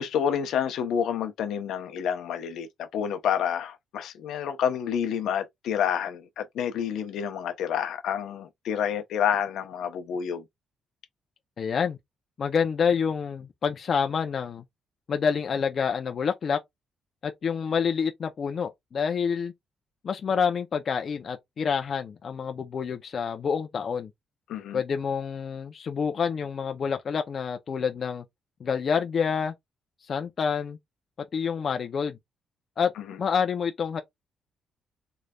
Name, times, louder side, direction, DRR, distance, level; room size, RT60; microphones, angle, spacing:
voice 1, 0.0-10.4 24.5-24.8 33.0-33.1, left 8 dB, 70° left, 0.7 m, -29 dB
voice 2, 11.6-12.0 12.4-14.6 15.1-16.6 17.2-19.5 20.0-24.1 24.7-28.2 28.6-29.5 30.1-30.8 31.3-32.2 32.8-32.9 33.2-34.0, left 6 dB, 35° left, 0.5 m, -27 dB
3.9 x 3.2 x 2.3 m
cardioid pair, 175°, 0 cm